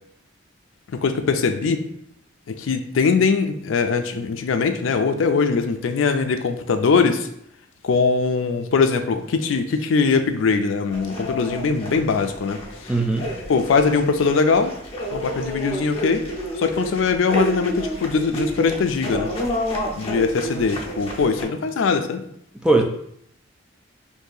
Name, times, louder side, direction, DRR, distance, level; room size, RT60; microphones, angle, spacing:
voice 1, 0.9-1.8 2.5-7.3 7.8-12.6 13.5-14.7 15.1-16.2 16.6-19.3 19.9-22.3, left 5 dB, 75° left, 7 dB, 0.4 m, -21 dB
sound 1, 10.9-21.4, equal, 30° left, 0.6 m, -30 dB
voice 2, 12.9-13.3 22.6-22.8, right 2 dB, 5° right, 2 dB, 0.3 m, -18 dB
2.7 x 2.6 x 3.8 m, 0.70 s
head